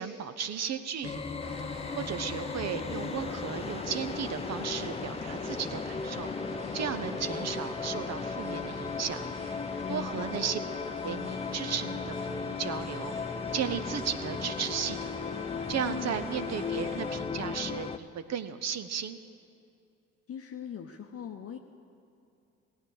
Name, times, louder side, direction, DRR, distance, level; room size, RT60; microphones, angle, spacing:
voice 1, 0.0-1.4 2.0-6.3 6.7-9.2 9.9-10.6 11.0-13.1 13.5-15.2 15.7-19.2, right 8 dB, 45° right, 10 dB, 0.8 m, -35 dB
sound 1, 1.0-18.0, left 5 dB, 15° left, 0.5 m, -36 dB
sound 2, 1.4-17.2, right 2 dB, 15° right, 2.1 m, -46 dB
voice 2, 9.9-10.3 15.9-16.2 20.3-21.6, left 8 dB, 35° left, 4 dB, 0.8 m, -41 dB
18.0 x 9.0 x 6.6 m, 2.7 s
figure-of-eight pair, 45°, 38 cm